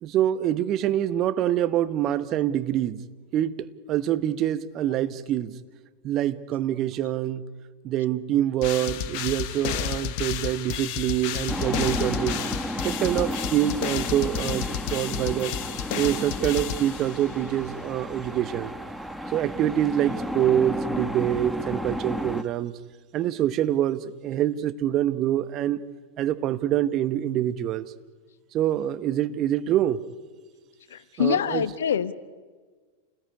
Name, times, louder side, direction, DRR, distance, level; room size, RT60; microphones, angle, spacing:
voice 1, 0.0-3.0 3.3-5.5 6.0-7.4 7.8-12.4 12.8-15.6 16.0-18.7 19.3-22.7 23.1-25.8 26.2-27.9 28.5-30.0 31.2-31.7, right 11 dB, 35° right, 1.0 m, -25 dB
sound 1, 8.6-17.4, left 10 dB, 45° left, 1.2 m, -31 dB
sound 2, 11.5-22.4, equal, ahead, 1.1 m, -33 dB
voice 2, 30.9-32.1, left 8 dB, 65° left, 1.0 m, -25 dB
28.5 x 19.5 x 9.7 m
figure-of-eight pair, 90°, 0 cm